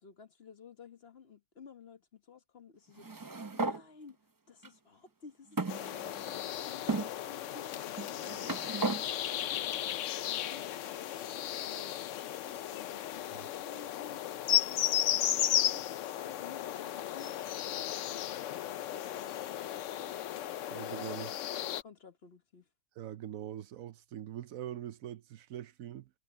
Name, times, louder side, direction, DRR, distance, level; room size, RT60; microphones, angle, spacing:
voice 1, 0.0-4.2 4.5-6.9 7.2-12.0 12.7-14.2 14.5-15.8 16.2-18.2 18.7-20.2 20.9-21.1 21.3-22.7, left 6 dB, 45° left, 1.3 m, -54 dB
sound 1, 3.0-3.8 4.6-4.7 5.6-6.4 6.9-7.1 8.0-9.0, right 3 dB, 30° right, 0.3 m, -35 dB
sound 2, 5.7-21.8, left 12 dB, 65° left, 0.9 m, -35 dB
voice 2, 20.7-21.3 23.0-26.1, right 11 dB, 70° right, 1.0 m, -43 dB
omnidirectional pair, 1.5 m